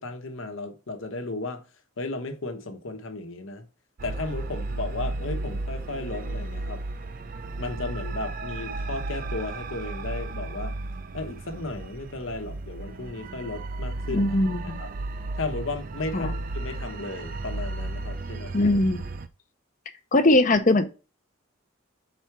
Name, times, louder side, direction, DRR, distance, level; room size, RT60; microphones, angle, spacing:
voice 1, 0.0-1.6 2.0-3.6 4.0-6.8 7.6-10.8 11.1-14.9 15.3-18.5, left 2 dB, 75° left, 1.0 m, -34 dB
sound 1, 4.0-19.3, right 2 dB, 40° right, 0.4 m, -34 dB
voice 2, 14.1-14.8 16.1-16.3 18.5-19.0 20.1-20.9, left 2 dB, 40° left, 0.6 m, -21 dB
4.6 x 4.3 x 5.8 m
head